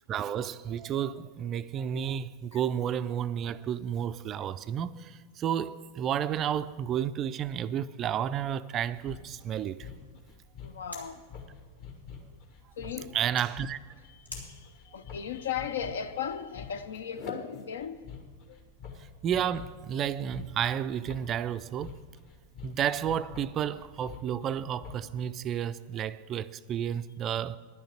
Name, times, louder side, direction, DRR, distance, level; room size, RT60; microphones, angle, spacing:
voice 1, 0.1-9.9 13.1-13.8 19.2-22.0 22.6-27.6, right 9 dB, 30° right, 0.3 m, -31 dB
sound 1, 7.1-16.5, equal, 85° left, 2.2 m, -54 dB
sound 2, 8.8-25.2, left 6 dB, 45° left, 1.6 m, -46 dB
voice 2, 10.6-11.4 12.8-13.1 14.0-18.1 18.5-18.6, left 8 dB, 65° left, 0.6 m, -37 dB
11.0 x 6.4 x 8.7 m
figure-of-eight pair, 90°, 0 cm